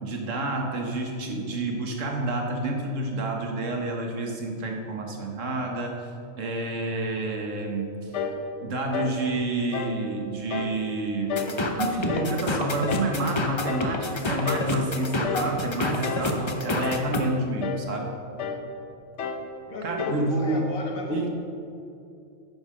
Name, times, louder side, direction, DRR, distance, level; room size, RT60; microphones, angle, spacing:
voice 1, 0.0-6.1 6.4-7.9 8.6-11.5 11.8-18.1 19.8-20.7 21.1-21.3, right 2 dB, 65° right, 2 dB, 1.5 m, -29 dB
sound 1, 8.1-8.4 8.9-9.2 9.7-10.0 10.5-10.8 11.3-11.6 12.1-12.4 12.9-13.2 13.7-13.9 14.4-14.8 15.2-15.6 16.0-16.3 16.8-17.2 17.6-17.9 18.4-18.7 19.2-19.5 20.0-20.3, left 5 dB, 60° left, 1.0 m, -31 dB
sound 2, 11.4-17.2, left 2 dB, 30° left, 0.5 m, -28 dB
voice 2, 19.7-21.3, left 2 dB, 75° left, 0 dB, 1.8 m, -35 dB
9.3 x 5.6 x 6.2 m, 2.6 s
omnidirectional pair, 1.4 m